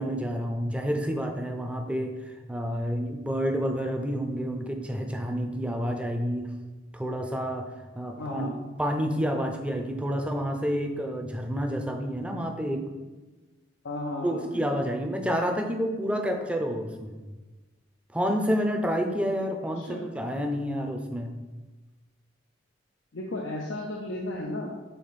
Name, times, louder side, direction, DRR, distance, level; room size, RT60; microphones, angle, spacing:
voice 1, 0.0-6.5 6.9-7.7 7.9-8.5 8.8-12.9 14.2-17.2 18.1-21.3, equal, 5° right, 3 dB, 0.6 m, -29 dB
voice 2, 8.2-8.5 13.8-14.7 19.8-20.1 23.1-24.7, left 1 dB, 80° left, -1 dB, 0.7 m, -34 dB
6.8 x 4.1 x 4.1 m, 1.2 s
head